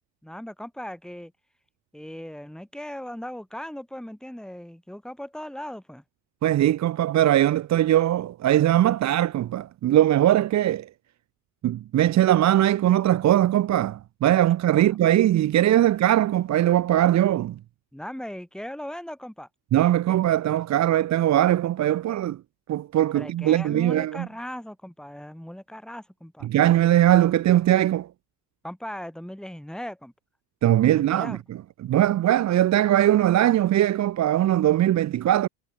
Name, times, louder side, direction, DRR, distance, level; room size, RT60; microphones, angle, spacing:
voice 1, 0.2-1.3 1.9-6.0 14.9-15.0 17.9-19.5 23.1-26.7 28.6-30.1 30.9-31.4, equal, ahead, 3.7 m, -38 dB
voice 2, 6.4-10.9 11.6-17.6 19.7-22.4 22.7-24.3 26.4-28.1 30.6-31.4 31.8-35.5, right 12 dB, 35° right, 0.6 m, -20 dB
hypercardioid pair, 70°, 50 cm